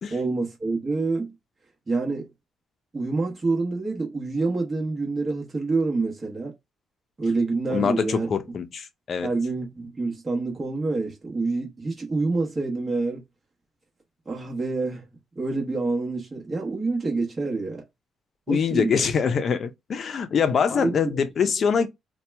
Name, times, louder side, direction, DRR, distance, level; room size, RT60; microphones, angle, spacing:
voice 1, 0.1-1.3 1.9-2.3 2.9-6.5 7.2-8.3 9.2-13.2 14.3-15.0 15.4-17.8 18.5-19.1 20.7-21.0 21.4-21.5, right 3 dB, 30° right, 1.1 m, -27 dB
voice 2, 7.7-9.3 18.5-21.9, left 6 dB, 55° left, 0.5 m, -24 dB
2.8 x 2.3 x 3.3 m
cardioid pair, 90°, 0 cm